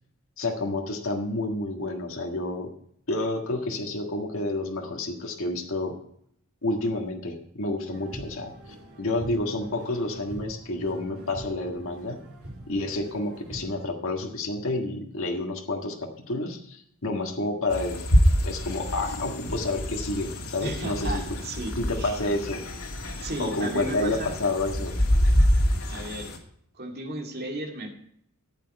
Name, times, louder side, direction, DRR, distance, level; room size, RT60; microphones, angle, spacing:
voice 1, 0.4-2.7 3.1-6.0 6.6-8.6 9.0-12.2 12.7-18.0 18.4-21.2 21.8-22.6 23.4-25.0, left 2 dB, 65° left, 1 dB, 1.7 m, -29 dB
sound 1, 7.9-13.9, right 1 dB, 85° right, 3.5 m, -43 dB
sound 2, 17.7-26.4, equal, 90° left, 2.5 m, -26 dB
voice 2, 20.6-21.7 22.0-22.2 23.2-24.3 25.9-26.3 26.8-27.9, right 1 dB, 45° right, 2 dB, 2.3 m, -34 dB
14.0 x 9.0 x 4.7 m, 0.69 s
head